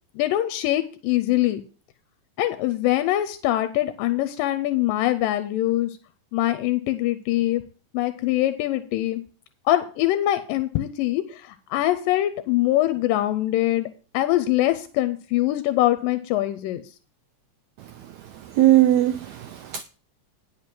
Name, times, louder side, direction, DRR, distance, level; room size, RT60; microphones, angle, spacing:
voice 1, 0.2-1.6 2.4-6.0 6.3-7.6 7.9-9.2 9.7-13.9 14.1-16.8, left 14 dB, 85° left, 2.3 m, -23 dB
voice 2, 18.4-19.8, right 14 dB, 90° right, 1.6 m, -19 dB
10.5 x 5.4 x 6.0 m
omnidirectional pair, 3.9 m